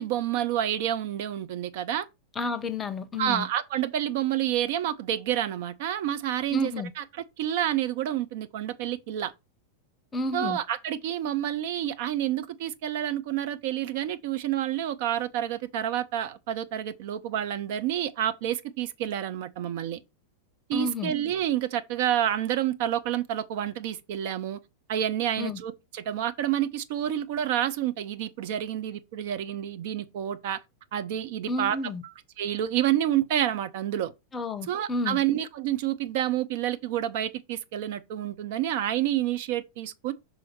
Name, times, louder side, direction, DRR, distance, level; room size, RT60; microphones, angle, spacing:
voice 1, 0.0-2.1 3.2-9.3 10.3-20.0 20.7-24.6 24.9-30.6 30.9-31.8 32.4-34.1 34.7-40.1, right 11 dB, 50° right, 0.6 m, -29 dB
voice 2, 2.4-3.5 6.5-6.9 10.1-10.6 20.7-21.1 25.4-25.6 31.5-32.0 34.3-35.2, left 2 dB, 20° left, 0.7 m, -31 dB
6.3 x 3.8 x 4.6 m
figure-of-eight pair, 90°, 0 cm